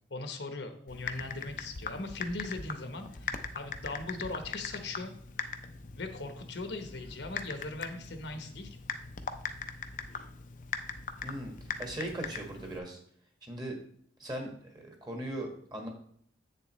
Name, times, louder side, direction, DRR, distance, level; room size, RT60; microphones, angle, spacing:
voice 1, 0.1-5.1 5.4-5.5 5.9-8.8, left 2 dB, 70° left, 6 dB, 1.0 m, -39 dB
Typing, 0.9-12.8, left 5 dB, 45° left, 0.6 m, -41 dB
voice 2, 11.2-11.5 11.8-13.0 13.4-13.8 14.2-15.9, right 1 dB, 25° right, 2 dB, 1.6 m, -39 dB
7.9 x 6.8 x 3.1 m, 0.63 s
head